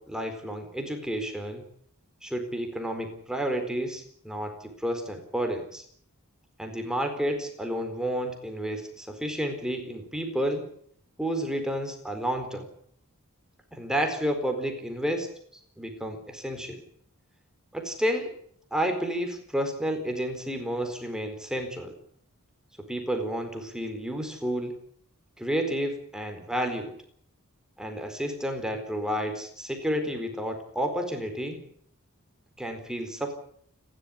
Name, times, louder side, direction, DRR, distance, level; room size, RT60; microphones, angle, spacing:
voice 1, 0.0-1.6 2.2-5.8 6.6-10.7 11.2-12.7 13.7-15.3 15.8-16.8 17.7-18.3 18.7-21.9 22.8-24.7 25.4-27.0 27.8-31.6 32.6-33.3, equal, 5° right, 5 dB, 4.3 m, -31 dB
29.5 x 13.0 x 9.8 m, 0.64 s
head